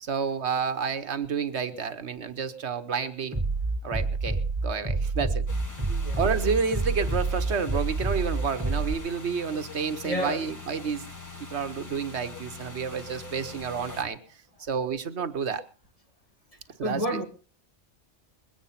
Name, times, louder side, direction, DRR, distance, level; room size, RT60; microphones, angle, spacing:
voice 1, 0.0-3.4 3.8-5.4 6.2-11.1 11.5-14.2 14.6-15.6 16.8-17.2, right 6 dB, 75° right, 1.3 m, -30 dB
Bass drum, 3.3-8.9, right 3 dB, 25° right, 2.1 m, -28 dB
sound 1, 5.5-14.0, left 4 dB, 15° left, 1.9 m, -43 dB
voice 2, 5.9-6.2 10.0-10.5 16.8-17.2, equal, 30° left, 2.2 m, -30 dB
21.0 x 9.0 x 5.7 m
omnidirectional pair, 1.2 m